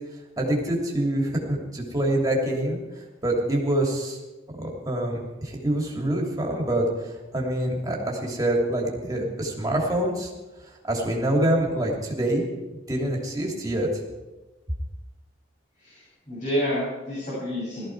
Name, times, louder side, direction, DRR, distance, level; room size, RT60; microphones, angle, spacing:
voice 1, 0.4-2.8 3.2-4.2 4.5-10.3 10.8-12.4 12.7-13.9, right 1 dB, 20° right, -2 dB, 3.0 m, -26 dB
voice 2, 15.8-17.9, equal, 40° left, -8 dB, 7.0 m, -29 dB
17.5 x 14.0 x 4.7 m, 1.1 s
head